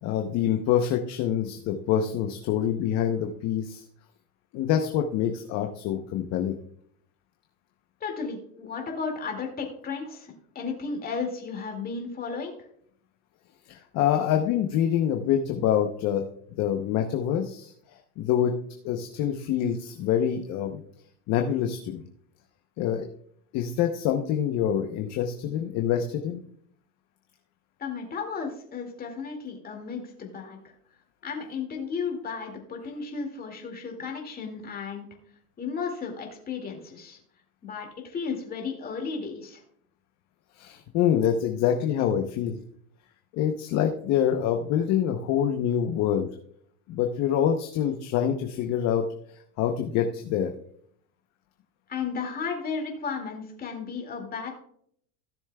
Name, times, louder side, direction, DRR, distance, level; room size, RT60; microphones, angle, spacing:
voice 1, 0.0-3.8 4.5-6.6 13.7-16.2 16.6-17.7 18.2-18.6 18.8-20.8 21.3-22.0 22.8-23.1 23.5-26.4 40.6-42.6 43.3-46.3 46.9-49.1 49.6-50.5, left 9 dB, 35° left, 4 dB, 0.8 m, -26 dB
voice 2, 8.0-12.5 27.8-30.6 31.2-35.1 35.6-37.2 37.6-39.6 51.9-54.5, left 5 dB, 20° left, 2 dB, 2.2 m, -34 dB
16.5 x 7.0 x 2.3 m, 0.65 s
supercardioid pair, 145°, 46 cm